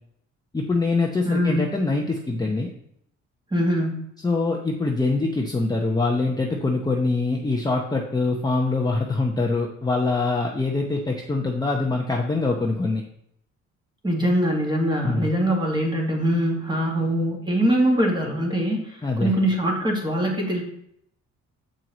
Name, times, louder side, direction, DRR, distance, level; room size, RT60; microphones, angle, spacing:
voice 1, 0.5-2.7 4.2-13.0 15.0-15.3 19.0-19.3, left 3 dB, 15° left, 0 dB, 0.8 m, -24 dB
voice 2, 1.3-1.7 3.5-4.0 14.0-20.6, equal, 15° right, -1 dB, 1.9 m, -23 dB
7.6 x 4.6 x 4.0 m, 0.74 s
cardioid pair, 90°, 30 cm